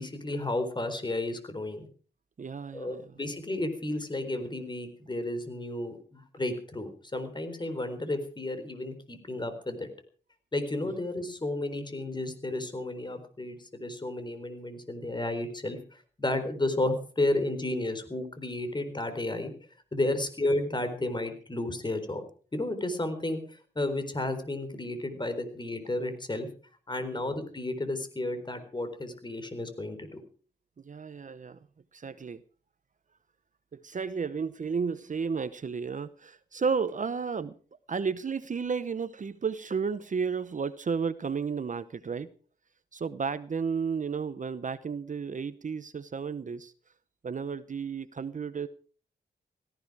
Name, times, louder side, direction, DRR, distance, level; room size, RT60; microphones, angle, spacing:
voice 1, 0.0-1.9 2.7-9.9 10.5-15.8 16.2-19.5 19.9-22.2 22.5-23.4 23.8-26.5 26.9-30.2, left 2 dB, 25° left, 9 dB, 4.0 m, -32 dB
voice 2, 2.4-3.1 27.1-27.2 30.8-31.6 31.9-32.4 33.7-37.5 37.9-42.3 42.9-46.7 47.2-48.7, right 5 dB, 45° right, 14 dB, 0.9 m, -32 dB
18.0 x 15.0 x 4.8 m, 0.42 s
cardioid pair, 90°, 18 cm